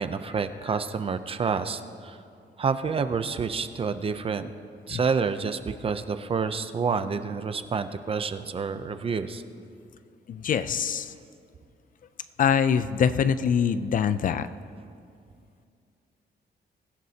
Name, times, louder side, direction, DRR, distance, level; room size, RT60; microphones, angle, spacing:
voice 1, 0.0-2.2 2.6-4.5 4.9-9.4, right 5 dB, 30° right, 10 dB, 0.5 m, -28 dB
voice 2, 10.3-11.1 12.4-14.5, left 7 dB, 45° left, 13 dB, 0.4 m, -24 dB
24.0 x 15.0 x 2.8 m, 2.4 s
wide cardioid pair, 175°, 19 cm